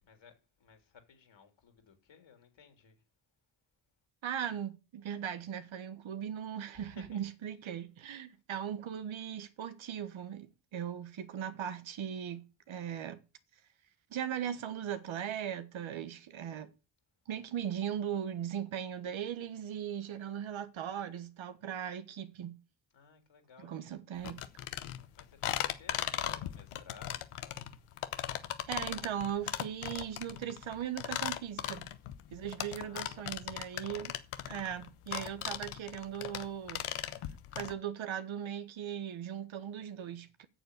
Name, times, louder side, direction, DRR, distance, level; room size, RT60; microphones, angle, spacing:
voice 1, 0.0-3.0 6.7-7.2 22.9-23.8 25.2-27.6 32.7-33.5, left 6 dB, 65° left, 3.3 m, -58 dB
voice 2, 4.2-13.2 14.1-16.7 17.3-22.6 23.6-24.4 28.7-31.9 32.3-34.1 34.5-36.8 37.5-40.5, right 9 dB, 70° right, 1.4 m, -38 dB
sound 1, 24.2-37.7, left 12 dB, 85° left, 1.1 m, -38 dB
8.8 x 7.0 x 8.3 m
cardioid pair, 75°, 49 cm